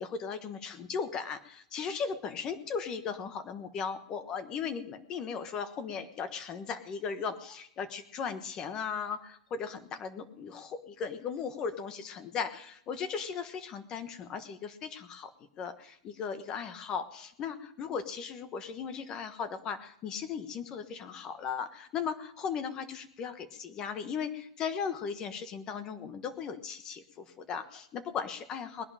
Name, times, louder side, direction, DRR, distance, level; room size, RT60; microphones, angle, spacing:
voice 1, 0.0-15.3 15.6-28.8, left 6 dB, 25° left, 10 dB, 1.2 m, -37 dB
20.0 x 11.0 x 5.0 m, 0.72 s
supercardioid pair, 160°, 3 cm